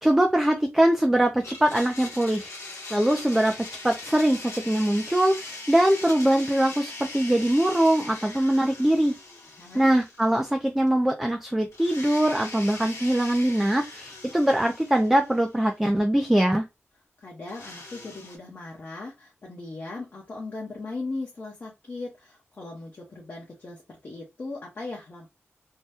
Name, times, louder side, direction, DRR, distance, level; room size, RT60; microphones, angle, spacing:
voice 1, 0.0-2.5 2.9-3.5 3.8-9.1 9.7-16.6, right 1 dB, 5° right, 3 dB, 0.4 m, -22 dB
Domestic sounds home sounds, 1.4-10.6 10.9-11.0 11.7-15.7 17.5-18.4, left 2 dB, 75° left, 1.0 m, -41 dB
voice 2, 9.5-9.9 17.2-25.3, left 3 dB, 45° left, -3 dB, 0.8 m, -38 dB
2.7 x 2.2 x 3.4 m, 0.23 s
wide cardioid pair, 145°, 5 cm